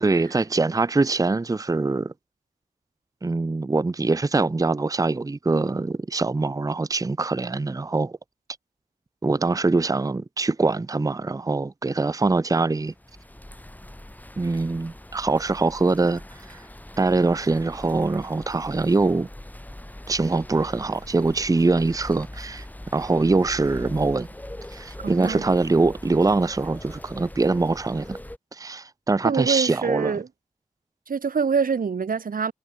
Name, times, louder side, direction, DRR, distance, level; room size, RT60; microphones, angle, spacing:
voice 1, 0.0-2.1 3.2-8.1 9.2-12.9 14.4-16.2 16.5-16.6 17.0-19.3 20.1-22.6 22.9-24.3 24.7-28.2 28.5-30.2, right 3 dB, 25° right, 0.6 m, -23 dB
sound 1, 12.9-28.4, left 1 dB, 10° left, 2.4 m, -41 dB
voice 2, 25.0-25.5 29.2-30.3 31.1-32.5, right 6 dB, 85° right, 1.1 m, -25 dB
wide cardioid pair, 95°, 14 cm